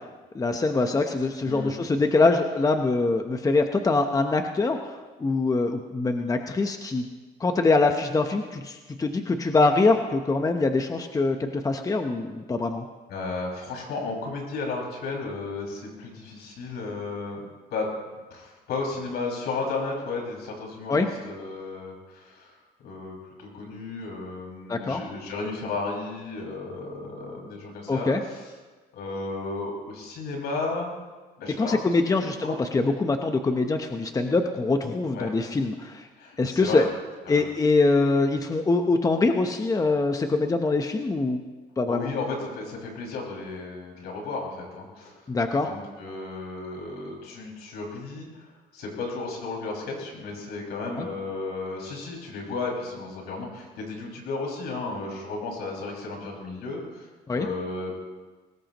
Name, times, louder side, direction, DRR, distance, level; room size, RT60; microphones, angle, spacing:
voice 1, 0.3-7.0 7.4-12.9 20.9-21.1 24.7-25.0 27.9-28.2 31.6-36.1 36.4-36.8 37.3-41.4 41.8-42.1 45.3-45.7 51.0-51.1 57.3-57.5, left 3 dB, 20° left, 5 dB, 1.0 m, -24 dB
voice 2, 13.1-17.9 18.3-28.4 28.9-31.0 31.4-31.8 32.2-32.5 35.1-35.3 36.2-36.9 37.3-37.4 41.9-45.3 45.6-58.0, left 3 dB, 75° left, -1 dB, 6.0 m, -34 dB
22.5 x 19.5 x 3.1 m, 1.3 s
cardioid pair, 110°, 17 cm